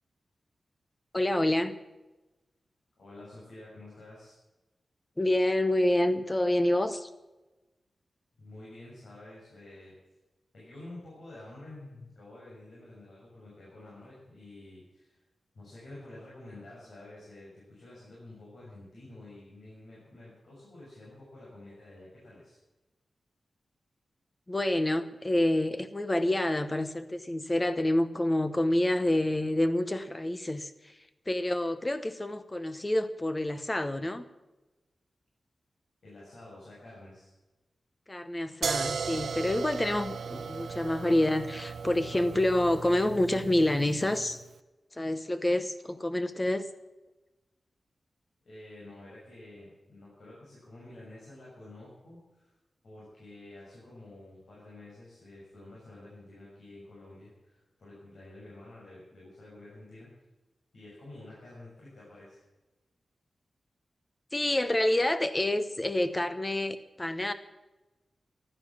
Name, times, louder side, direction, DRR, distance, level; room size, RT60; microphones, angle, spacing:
voice 1, 1.1-1.8 5.2-7.1 24.5-31.0 31.3-34.2 38.1-44.4 44.9-46.7 64.3-67.3, left 1 dB, 15° left, 11 dB, 0.9 m, -28 dB
voice 2, 3.0-4.3 8.4-9.9 10.5-15.2 15.5-22.6 36.0-37.3 48.4-52.5 52.8-60.1 60.7-62.4, left 2 dB, 65° left, -6 dB, 6.5 m, -49 dB
sound 1, 38.6-44.4, right 6 dB, 70° right, 0.6 m, -36 dB
15.0 x 11.5 x 7.3 m, 1.1 s
wide cardioid pair, 175°, 0 cm